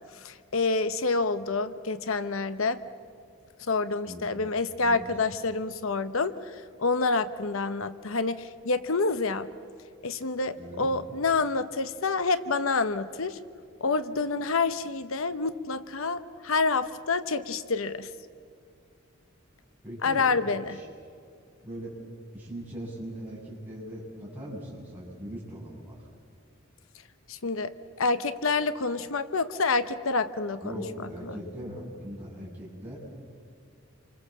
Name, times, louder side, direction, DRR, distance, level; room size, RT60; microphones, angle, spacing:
voice 1, 0.0-2.8 3.6-9.5 10.0-13.4 13.8-18.1 20.0-20.8 27.3-27.7 28.0-30.7 31.2-31.3, left 3 dB, 80° left, 12 dB, 0.9 m, -28 dB
voice 2, 10.6-10.9 19.8-20.3 20.6-20.9 21.6-21.9 22.3-26.1 30.6-33.0, equal, 10° right, -5 dB, 7.5 m, -40 dB
29.0 x 25.0 x 7.5 m, 2.3 s
head